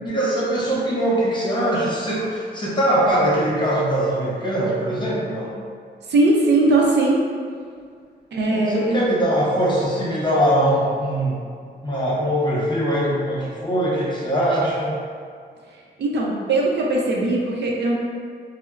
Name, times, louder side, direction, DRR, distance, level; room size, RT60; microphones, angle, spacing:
voice 1, 0.1-5.6 8.5-11.4 11.8-15.0, right 1 dB, 25° left, -7 dB, 0.8 m, -22 dB
voice 2, 6.1-7.2 8.3-9.0 16.0-17.9, right 2 dB, 75° right, -2 dB, 0.6 m, -19 dB
4.2 x 2.0 x 2.4 m, 2.1 s
wide cardioid pair, 155°, 18 cm